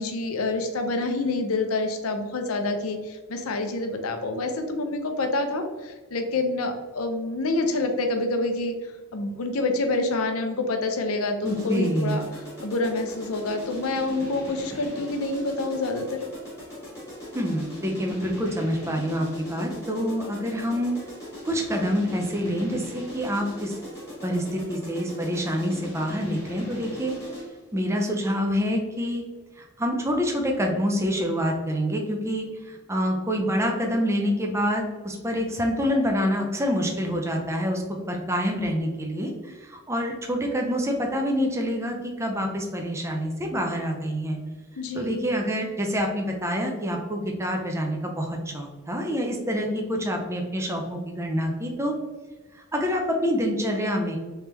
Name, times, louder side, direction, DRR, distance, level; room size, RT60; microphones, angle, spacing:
voice 1, 0.0-12.2 12.6-16.2 44.8-45.2, left 2 dB, 75° left, 5 dB, 0.6 m, -27 dB
sound 1, 11.4-27.6, left 1 dB, 15° left, 1.3 m, -39 dB
voice 2, 11.4-12.2 17.3-20.9 21.4-23.8 24.2-27.2 27.7-29.2 29.6-37.8 38.1-44.4 44.9-52.0 52.5-54.2, equal, 10° right, 2 dB, 0.5 m, -27 dB
3.4 x 3.2 x 2.9 m, 1.3 s
head